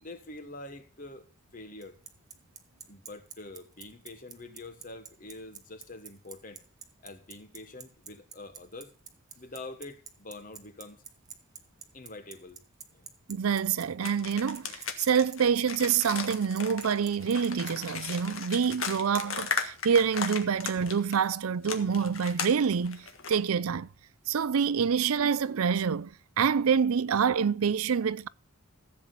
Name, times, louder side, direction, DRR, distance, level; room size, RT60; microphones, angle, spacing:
voice 1, 0.0-2.0 2.9-6.6 7.0-8.9 9.4-11.0 11.9-12.6 12.9-13.1, left 2 dB, 40° left, 1.4 m, -45 dB
Bicycle, 1.8-17.7, right 7 dB, 15° right, 1.0 m, -45 dB
voice 2, 13.3-23.9 24.3-28.3, right 6 dB, 85° right, 0.5 m, -27 dB
sound 1, 14.0-21.2 21.6-23.4, left 6 dB, 70° left, 1.6 m, -36 dB
15.0 x 7.8 x 3.9 m
head